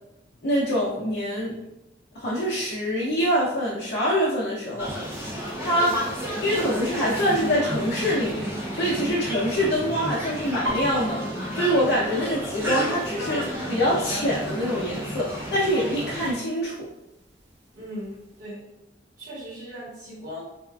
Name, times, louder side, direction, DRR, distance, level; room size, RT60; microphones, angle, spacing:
voice 1, 0.4-1.6 2.1-4.9 5.2-6.0 6.4-11.2 11.5-16.9, equal, 60° left, -8 dB, 0.6 m, -25 dB
sound 1, 4.8-16.3, equal, 15° right, 0.5 m, -32 dB
Piano, 10.6-14.3 14.6-15.1 15.4-16.0 16.6-16.7 17.0-18.0 18.4-18.5, right 1 dB, 70° right, 0.7 m, -36 dB
voice 2, 17.7-18.7 19.2-20.4, equal, 45° right, -9 dB, 1.3 m, -38 dB
3.5 x 2.4 x 2.3 m, 0.88 s
head